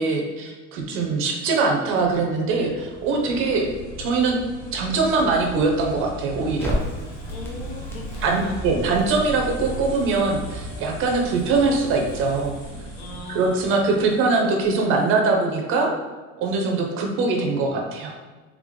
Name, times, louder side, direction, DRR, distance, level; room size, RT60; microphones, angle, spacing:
voice 1, 0.0-3.7 4.0-4.4 4.7-6.8 8.2-12.6 13.3-15.9 16.4-18.2, right 3 dB, 40° right, 1 dB, 0.7 m, -22 dB
sound 1, 2.0-14.7, equal, 25° left, 1.5 m, -37 dB
Crackle, 6.6-12.7, left 1 dB, 10° left, 0.3 m, -35 dB
voice 2, 7.3-8.6 13.0-14.0, left 3 dB, 55° left, 0 dB, 0.9 m, -38 dB
3.6 x 3.4 x 3.7 m, 1.3 s
cardioid pair, 180°, 32 cm